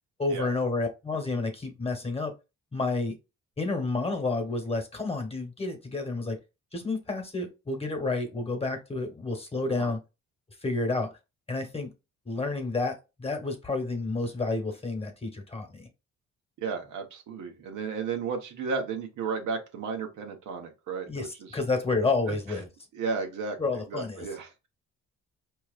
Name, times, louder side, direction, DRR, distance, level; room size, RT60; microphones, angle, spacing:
voice 1, 0.2-2.3 2.7-3.1 3.6-6.4 6.7-10.0 10.6-11.1 11.5-11.9 12.2-15.9 21.1-22.7 23.6-24.3, left 3 dB, 20° left, 1.2 m, -30 dB
voice 2, 16.6-21.6 22.3-22.6 22.9-23.6 23.9-24.5, right 5 dB, 80° right, 1.1 m, -34 dB
4.7 x 3.0 x 2.4 m
cardioid pair, 90°, 30 cm